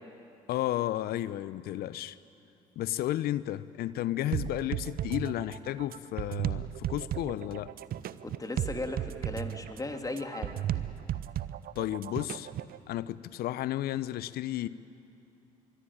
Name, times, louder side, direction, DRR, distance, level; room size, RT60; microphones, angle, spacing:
voice 1, 0.5-2.2 2.8-7.7 11.8-12.5 12.9-14.7, left 14 dB, 65° left, 17 dB, 0.9 m, -32 dB
sound 1, 4.3-12.8, right 11 dB, 55° right, 0.9 m, -35 dB
voice 2, 8.2-10.6, left 2 dB, 20° left, 4 dB, 3.1 m, -37 dB
24.5 x 23.0 x 8.9 m, 2.7 s
hypercardioid pair, 50°, 18 cm